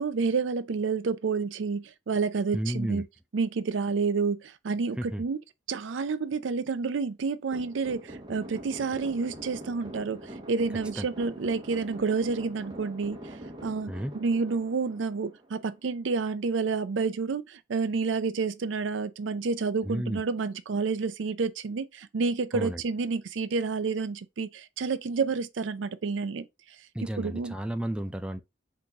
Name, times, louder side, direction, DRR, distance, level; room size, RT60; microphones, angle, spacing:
voice 1, 0.0-3.0 3.3-5.4 5.7-13.2 13.6-26.5 27.2-27.5, right 4 dB, 75° right, 0.5 m, -29 dB
voice 2, 2.5-3.0 5.0-5.2 11.0-11.1 13.9-14.1 19.8-20.2 22.5-22.8 26.9-28.4, right 1 dB, 5° right, 0.4 m, -32 dB
sound 1, 7.5-15.8, right 1 dB, 25° right, 0.8 m, -43 dB
3.8 x 2.9 x 4.5 m
head